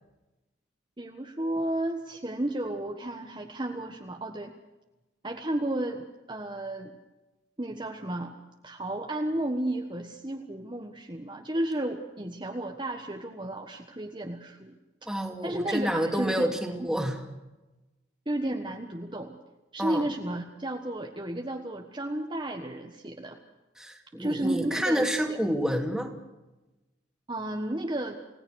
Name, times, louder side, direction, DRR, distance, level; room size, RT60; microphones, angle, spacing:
voice 1, 1.0-4.5 5.2-6.9 7.6-8.3 8.6-14.7 15.0-15.1 15.4-16.9 18.2-19.4 19.7-23.4 24.2-25.4 27.3-28.2, right 1 dB, 25° right, 2 dB, 1.4 m, -33 dB
voice 2, 15.1-17.2 19.8-20.0 23.8-26.1, equal, 5° right, 3 dB, 2.5 m, -28 dB
29.5 x 17.5 x 6.4 m, 1.1 s
head